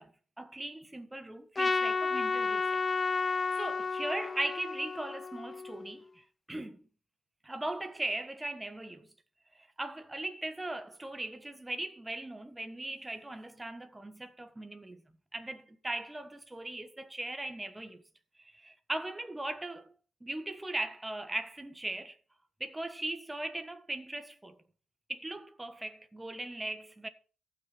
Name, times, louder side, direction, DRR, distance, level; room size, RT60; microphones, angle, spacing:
voice 1, 0.0-2.8 3.6-6.9 7.4-9.1 9.8-15.0 15.3-18.0 18.4-19.9 20.2-22.2 22.6-24.6 25.1-27.1, right 2 dB, 15° right, 1.3 m, -39 dB
Trumpet, 1.6-5.9, left 4 dB, 30° left, 0.6 m, -32 dB
14.5 x 6.2 x 5.1 m
cardioid pair, 90°, 0 cm